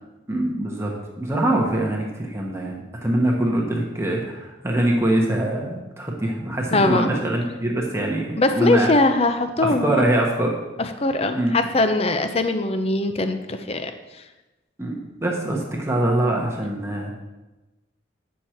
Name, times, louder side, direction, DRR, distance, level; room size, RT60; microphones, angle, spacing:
voice 1, 0.3-0.9 1.2-8.9 9.6-10.5 11.3-11.5 14.8-17.1, right 1 dB, 15° right, -1 dB, 1.0 m, -23 dB
voice 2, 6.7-7.1 8.4-10.0 10.8-13.9, left 2 dB, 30° left, 8 dB, 0.6 m, -21 dB
8.7 x 6.4 x 4.4 m, 1.1 s
head